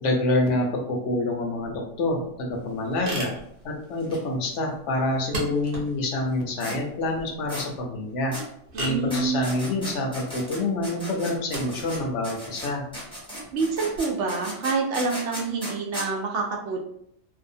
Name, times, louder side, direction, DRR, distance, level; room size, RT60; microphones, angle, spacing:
voice 1, 0.0-3.3 3.6-8.3 8.8-12.8, left 2 dB, 80° left, 1 dB, 1.0 m, -27 dB
sound 1, 1.6-14.0, right 1 dB, 50° right, 0.9 m, -39 dB
sound 2, 4.0-4.2 4.4-4.5 6.6-6.8 7.5-7.7 8.3-8.5 9.1-12.0 12.2-16.1, equal, 5° left, 0.7 m, -36 dB
voice 2, 8.7-9.5 13.5-16.8, right 4 dB, 75° right, 1 dB, 0.9 m, -27 dB
2.7 x 2.2 x 2.6 m, 0.72 s
omnidirectional pair, 1.2 m